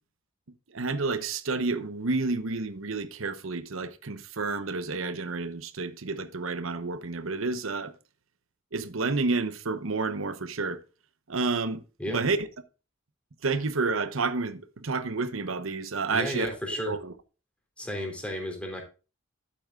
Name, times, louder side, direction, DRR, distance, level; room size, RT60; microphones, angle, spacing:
voice 1, 0.7-7.9 8.7-10.8 11.3-12.5 13.4-16.6 16.9-17.1, right 3 dB, 85° right, 1.0 m, -30 dB
voice 2, 16.1-16.9 17.8-18.8, left 1 dB, 5° left, 3.4 m, -33 dB
12.0 x 8.7 x 2.4 m
head